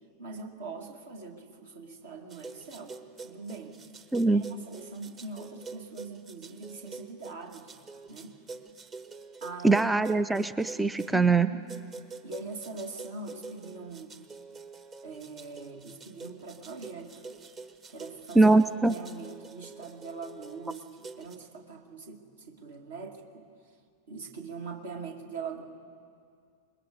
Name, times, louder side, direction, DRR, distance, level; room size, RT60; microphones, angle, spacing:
voice 1, 0.2-3.0 3.2-3.7 4.2-7.7 8.1-8.4 9.4-9.8 11.1-11.7 12.2-14.1 15.0-17.2 17.9-18.5 18.9-20.8 21.2-23.4 24.1-25.6, right 4 dB, 65° right, 2 dB, 2.2 m, -42 dB
sound 1, 2.3-11.2 11.7-21.4, right 4 dB, 25° right, 1.1 m, -46 dB
voice 2, 4.1-4.4 9.6-11.5 18.3-19.0, right 3 dB, 5° right, 13 dB, 0.4 m, -22 dB
26.0 x 21.0 x 5.2 m, 2.2 s
figure-of-eight pair, 90°, 0 cm